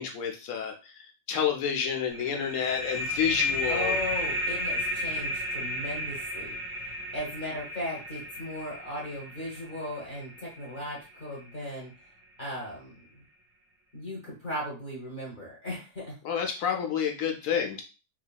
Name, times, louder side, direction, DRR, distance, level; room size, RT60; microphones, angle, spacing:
voice 1, 0.0-4.0 16.2-17.8, left 7 dB, 70° left, 3 dB, 1.0 m, -29 dB
sound 1, 2.1-11.4, left 1 dB, 25° right, 0.6 m, -33 dB
voice 2, 3.6-6.6 7.1-11.9 12.4-13.2 13.9-16.2, left 1 dB, 40° left, -4 dB, 1.0 m, -37 dB
2.8 x 2.5 x 2.3 m, 0.31 s
omnidirectional pair, 1.5 m